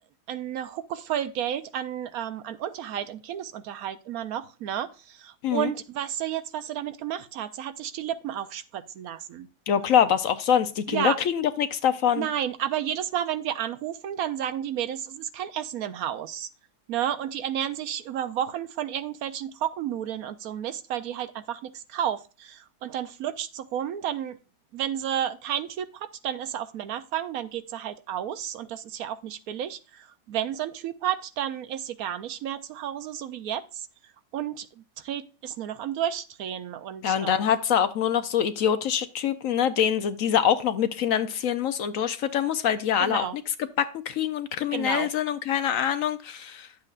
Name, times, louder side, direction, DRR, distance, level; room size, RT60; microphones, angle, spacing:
voice 1, 0.3-9.5 10.9-11.2 12.1-16.5 16.9-24.4 24.7-33.9 34.3-37.5 43.0-43.4 44.7-45.1, right 10 dB, 70° right, 12 dB, 1.0 m, -32 dB
voice 2, 9.7-12.3 37.0-43.2 43.8-46.7, left 9 dB, 65° left, 11 dB, 1.0 m, -24 dB
11.0 x 7.6 x 2.4 m, 0.34 s
omnidirectional pair, 1.7 m